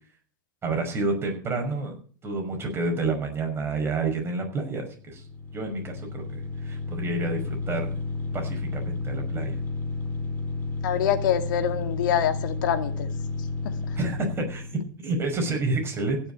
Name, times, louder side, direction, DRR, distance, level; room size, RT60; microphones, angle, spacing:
voice 1, 0.6-2.0 2.2-5.2 5.5-7.9 8.3-9.6 14.0-16.2, right 2 dB, 20° right, 3 dB, 5.7 m, -29 dB
sound 1, 5.0-14.9, left 3 dB, 20° left, 4.5 m, -32 dB
voice 2, 10.8-13.1, left 9 dB, 70° left, 7 dB, 2.4 m, -25 dB
16.0 x 7.2 x 8.6 m, 0.43 s
hypercardioid pair, 115°, 11 cm